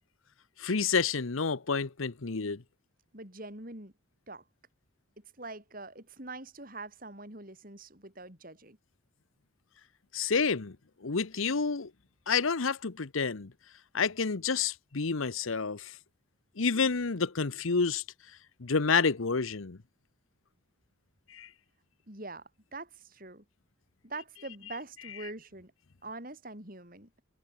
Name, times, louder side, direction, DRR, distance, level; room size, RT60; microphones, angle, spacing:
voice 1, 0.6-2.6 10.1-10.8 11.0-11.9 12.3-13.5 13.9-15.9 16.6-18.0 18.6-19.8 21.3-21.5, left 5 dB, 80° left, 0.9 m, -29 dB
voice 2, 3.1-3.9 4.3-4.4 5.2-8.8 22.1-23.4 24.0-25.7 26.0-27.2, right 2 dB, 40° right, 6.4 m, -44 dB
head